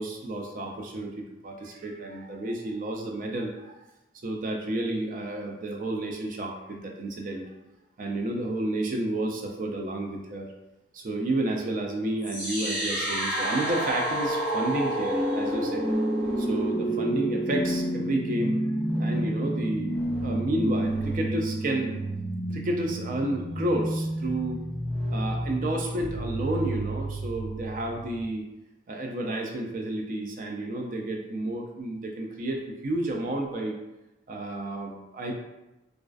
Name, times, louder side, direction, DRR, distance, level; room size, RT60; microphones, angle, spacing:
voice 1, 0.0-3.8 4.2-7.4 8.0-10.5 10.9-15.9 16.4-18.6 19.0-21.9 22.5-24.6 25.1-28.4 28.9-33.8 34.3-35.3, right 1 dB, 50° right, 1 dB, 0.4 m, -31 dB
sound 1, 12.2-28.2, right 1 dB, 5° right, 0.9 m, -29 dB
2.3 x 2.3 x 2.3 m, 0.95 s
head